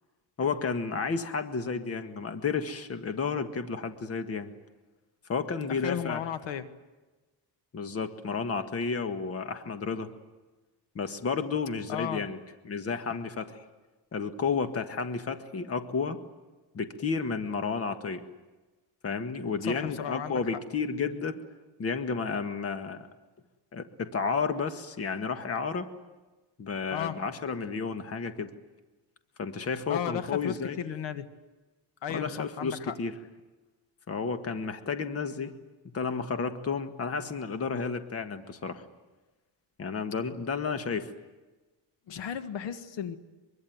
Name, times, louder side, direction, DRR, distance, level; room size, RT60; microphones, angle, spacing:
voice 1, 0.4-4.5 5.3-6.2 7.7-10.1 11.0-12.4 12.6-13.6 14.1-16.2 16.7-18.2 19.0-21.4 21.8-23.1 23.7-25.9 26.6-28.5 29.4-30.8 32.1-33.1 34.1-35.5 35.9-38.8 39.8-41.1, left 5 dB, 30° left, 9 dB, 1.8 m, -32 dB
voice 2, 5.7-6.7 11.9-12.3 19.6-20.4 26.9-27.2 29.9-31.3 32.0-33.0 42.1-43.2, left 9 dB, 70° left, 10 dB, 1.8 m, -34 dB
24.0 x 23.5 x 9.5 m, 1.2 s
cardioid pair, 140°, 45 cm